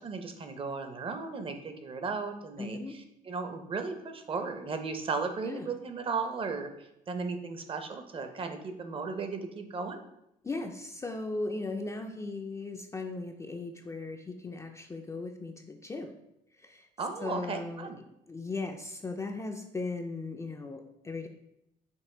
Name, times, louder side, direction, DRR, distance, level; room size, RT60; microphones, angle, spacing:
voice 1, 0.0-2.8 3.3-6.7 7.1-10.0 17.0-18.0, right 4 dB, 30° right, 7 dB, 0.6 m, -35 dB
voice 2, 2.6-3.0 5.4-5.7 10.4-16.1 16.5-16.9 17.2-17.9 18.3-21.3, left 3 dB, 15° left, 4 dB, 0.3 m, -37 dB
5.4 x 2.6 x 3.7 m, 0.82 s
cardioid pair, 110°, 17 cm